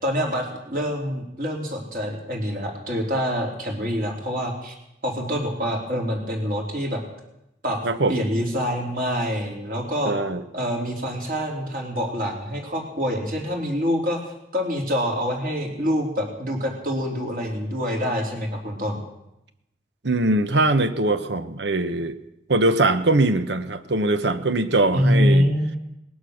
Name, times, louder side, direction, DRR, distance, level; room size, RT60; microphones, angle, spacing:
voice 1, 0.0-4.7 5.0-7.0 7.6-7.8 8.1-10.1 10.5-14.2 14.5-19.0 24.9-25.8, equal, 50° right, 0 dB, 3.6 m, -25 dB
voice 2, 7.8-8.2 10.0-10.4 20.0-22.2 22.5-25.5, right 2 dB, 75° right, 11 dB, 1.1 m, -21 dB
19.0 x 11.5 x 6.5 m, 0.86 s
head